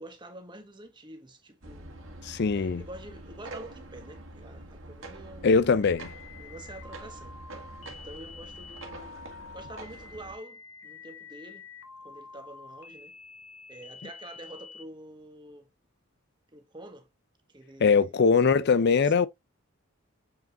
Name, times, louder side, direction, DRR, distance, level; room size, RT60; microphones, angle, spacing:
voice 1, 0.0-2.0 2.4-5.9 6.4-7.4 7.8-9.1 9.5-11.7 12.0-13.1 13.7-15.7 16.5-17.1 17.5-19.3, right 1 dB, 20° right, 1.3 m, -47 dB
sound 1, 1.6-10.4, right 2 dB, 65° right, 1.9 m, -45 dB
voice 2, 2.2-2.8 5.4-6.1 17.8-19.3, left 5 dB, 55° left, 0.4 m, -22 dB
sound 2, 5.8-14.8, left 5 dB, 90° left, 1.4 m, -48 dB
7.8 x 5.0 x 2.5 m
head